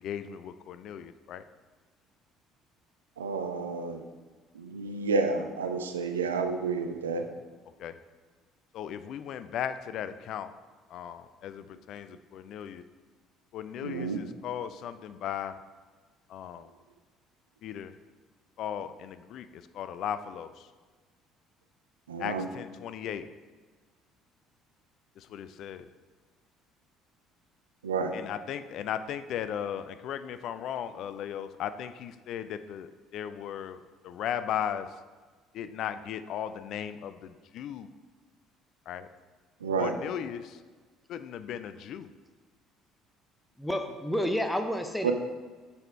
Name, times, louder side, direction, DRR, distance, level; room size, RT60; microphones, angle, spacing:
voice 1, 0.0-1.4 7.8-7.9 8.7-10.5 10.9-12.8 13.5-15.6 16.3-16.7 17.6-17.9 18.6-20.7 22.2-23.3 25.2-25.9 28.1-34.9 35.5-37.9 38.9-39.1 39.8-40.6 41.1-42.1, left 9 dB, 50° left, 11 dB, 0.3 m, -37 dB
voice 2, 3.2-4.0 4.5-7.3 13.8-14.2 22.1-22.5 27.8-28.2 39.6-39.9 45.0-45.1, right 4 dB, 75° right, 7 dB, 0.4 m, -30 dB
voice 3, 43.6-45.1, equal, 5° left, 5 dB, 0.6 m, -30 dB
6.5 x 4.2 x 4.5 m, 1.4 s
figure-of-eight pair, 55°, 0 cm